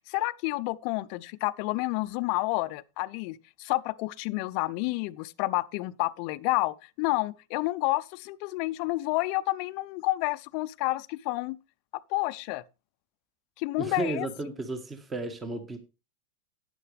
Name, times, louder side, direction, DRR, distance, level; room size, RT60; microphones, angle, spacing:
voice 1, 0.1-11.6 12.1-12.6 13.6-14.3, left 20 dB, 50° left, 0.5 m, -29 dB
voice 2, 13.8-15.8, right 2 dB, 20° right, 1.4 m, -33 dB
12.5 x 9.2 x 3.4 m
hypercardioid pair, 95°, 0 cm